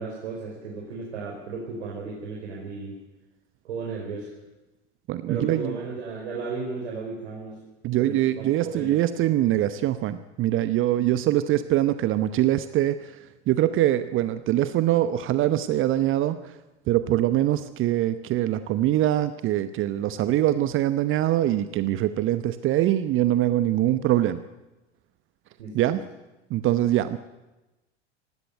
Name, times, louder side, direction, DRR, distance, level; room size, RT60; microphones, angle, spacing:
voice 1, 0.0-2.9 3.6-4.3 5.3-7.6 8.0-9.0 25.6-26.0, right 4 dB, 65° right, -2 dB, 4.8 m, -34 dB
voice 2, 5.1-5.7 7.8-13.1 13.5-16.4 16.9-24.4 25.7-26.0 26.5-27.2, right 13 dB, 35° right, 12 dB, 0.9 m, -23 dB
18.0 x 16.5 x 9.2 m, 1.1 s
figure-of-eight pair, 85°, 36 cm